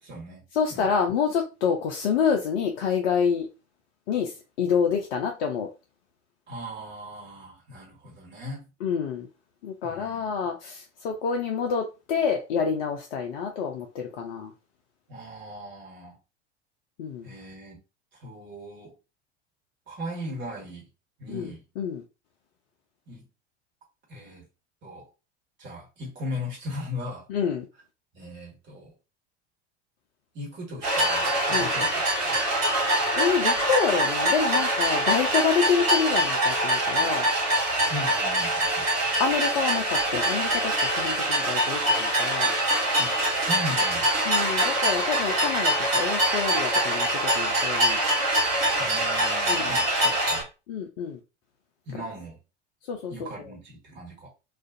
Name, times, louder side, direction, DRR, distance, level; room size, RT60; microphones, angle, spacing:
voice 1, 0.0-0.4 0.7-0.9 6.5-8.6 9.8-10.4 15.1-16.2 17.2-17.8 18.1-18.9 19.9-20.9 21.2-21.6 23.1-23.3 24.1-24.4 24.8-25.1 25.6-27.3 28.1-28.9 30.3-32.4 37.9-39.0 43.0-44.1 48.8-50.5 51.8-52.4 53.1-54.3, left 1 dB, 30° right, 1.3 m, -38 dB
voice 2, 0.5-3.5 4.1-5.7 8.8-9.3 9.6-14.5 17.0-17.3 21.3-21.5 21.8-22.0 27.3-27.7 31.5-31.7 33.2-37.3 39.2-42.5 44.3-48.0 49.5-49.7 50.7-51.2 52.9-53.3, left 6 dB, 55° left, 0.5 m, -27 dB
sound 1, 30.8-50.4, right 1 dB, 60° right, 1.5 m, -24 dB
2.5 x 2.3 x 2.5 m
figure-of-eight pair, 80°, 35 cm